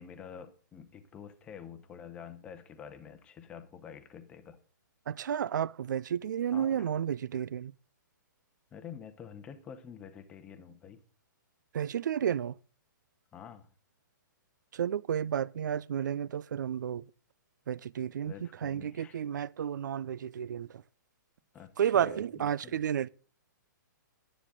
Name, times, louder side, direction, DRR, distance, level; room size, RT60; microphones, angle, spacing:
voice 1, 0.0-4.6 6.5-6.9 8.7-11.0 13.3-13.7 18.3-19.2 21.5-22.8, left 7 dB, 10° left, 0.8 m, -48 dB
voice 2, 5.1-7.7 11.7-12.5 14.7-17.0 17.7-20.7 21.8-23.1, right 9 dB, 65° right, 0.5 m, -32 dB
11.5 x 10.0 x 3.8 m
hypercardioid pair, 175°, 11 cm